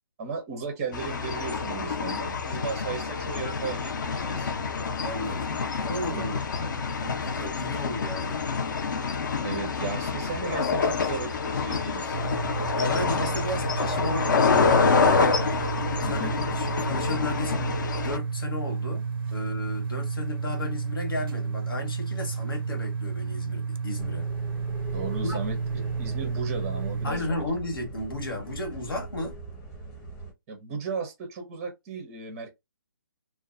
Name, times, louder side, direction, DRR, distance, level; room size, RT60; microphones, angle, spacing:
voice 1, 0.2-4.5 6.1-6.3 9.0-9.1 9.4-12.2 16.0-16.4 24.9-25.6 26.0-27.3 30.5-32.5, right 5 dB, 20° right, 0.5 m, -35 dB
sound 1, 0.9-18.2, left 5 dB, 60° left, 0.6 m, -27 dB
voice 2, 5.0-8.4 12.8-15.7 16.0-16.3 16.6-17.8 18.0-24.3 25.2-25.4 27.0-29.4, left 1 dB, 90° left, 1.2 m, -34 dB
sound 2, 12.1-27.1, right 5 dB, 80° right, 0.4 m, -32 dB
sound 3, 24.0-30.3, right 2 dB, 15° left, 0.8 m, -41 dB
2.4 x 2.2 x 2.4 m
hypercardioid pair, 165°, 12 cm